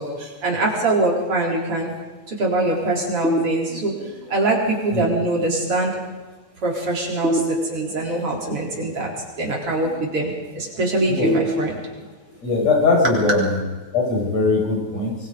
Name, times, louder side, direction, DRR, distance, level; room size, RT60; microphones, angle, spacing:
voice 1, 0.0-1.9 2.3-5.9 6.6-9.1 9.4-11.9, right 2 dB, 50° right, -2 dB, 5.0 m, -23 dB
sound 1, 3.2-4.2 7.2-8.2 11.2-12.2, equal, ahead, 4.9 m, -25 dB
voice 2, 12.4-13.6 13.9-15.1, left 3 dB, 60° left, 0 dB, 7.0 m, -20 dB
25.0 x 24.5 x 5.2 m, 1.3 s
omnidirectional pair, 3.3 m